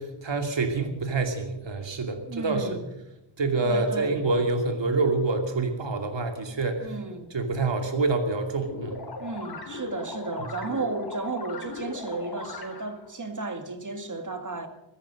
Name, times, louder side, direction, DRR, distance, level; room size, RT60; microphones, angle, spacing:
voice 1, 0.0-2.7 3.4-6.9 7.3-9.0, right 3 dB, 60° right, 2.7 m, -27 dB
voice 2, 2.3-2.9 3.6-4.2 6.8-7.3 9.2-14.7, right 3 dB, 40° right, 2.1 m, -33 dB
sound 1, 8.7-13.1, left 3 dB, 50° left, 3.9 m, -38 dB
15.5 x 14.0 x 6.5 m
cardioid pair, 60°, 48 cm